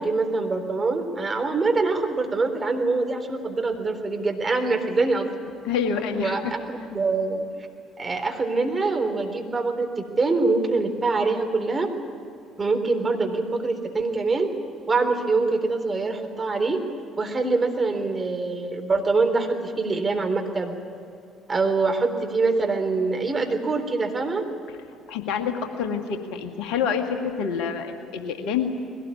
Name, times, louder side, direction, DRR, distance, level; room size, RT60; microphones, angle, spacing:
voice 1, 0.0-5.3 6.1-7.5 8.0-9.9 10.2-11.9 12.6-14.5 14.9-16.8 17.2-20.7 21.5-24.4, right 3 dB, 30° right, 4 dB, 3.7 m, -24 dB
voice 2, 5.6-6.5 25.1-28.7, left 7 dB, 65° left, 5 dB, 1.9 m, -27 dB
21.5 x 18.0 x 9.8 m, 2.4 s
figure-of-eight pair, 50°, 0 cm